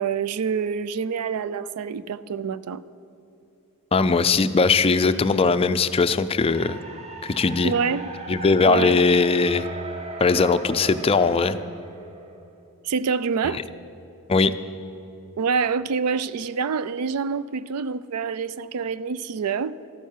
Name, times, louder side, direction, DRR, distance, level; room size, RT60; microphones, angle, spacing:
voice 1, 0.0-2.8 7.6-8.1 8.6-9.0 12.8-13.6 15.4-19.7, right 5 dB, 85° right, 0.4 m, -26 dB
voice 2, 3.9-6.8 7.2-7.7 8.3-9.6 10.2-11.6 13.4-13.6 14.3-14.5, left 4 dB, 25° left, 0.4 m, -20 dB
sound 1, 6.4-12.5, right 3 dB, 30° right, 0.9 m, -39 dB
13.0 x 9.2 x 7.3 m
head